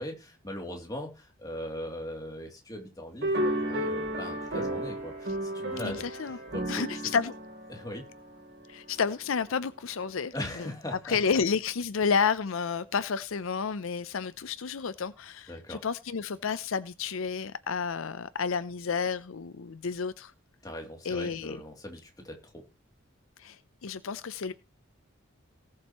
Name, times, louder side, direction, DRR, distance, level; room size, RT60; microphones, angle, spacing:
voice 1, 0.0-7.1 7.7-8.1 10.3-11.2 15.5-15.8 20.6-22.6, left 1 dB, 20° left, 2.8 m, -40 dB
sound 1, 3.2-8.8, right 1 dB, 55° right, 3.4 m, -33 dB
voice 2, 5.8-6.4 6.7-7.3 8.7-10.7 11.0-20.3 21.0-21.6 23.4-24.5, left 5 dB, 75° left, 0.6 m, -31 dB
19.0 x 7.6 x 3.0 m
head